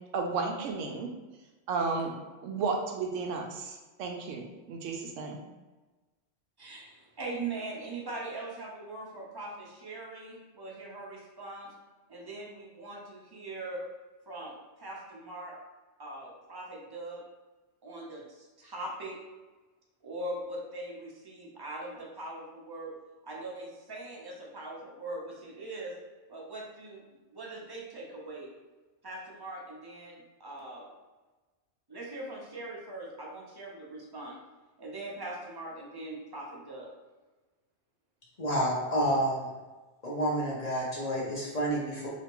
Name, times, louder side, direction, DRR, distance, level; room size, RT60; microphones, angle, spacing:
voice 1, 0.1-1.1 1.7-2.1 2.4-5.4, right 4 dB, 90° right, 2 dB, 1.0 m, -33 dB
voice 2, 6.6-11.7 12.1-13.8 14.3-15.5 16.0-17.2 17.8-19.2 20.0-22.9 23.2-26.0 26.3-27.0 27.3-28.5 29.0-30.9 31.9-34.4 34.8-36.9, right 2 dB, 25° right, -3 dB, 0.5 m, -41 dB
voice 3, 38.4-39.5 40.0-42.1, right 1 dB, 40° left, -5 dB, 0.7 m, -29 dB
3.3 x 2.8 x 3.0 m, 1.2 s
omnidirectional pair, 1.3 m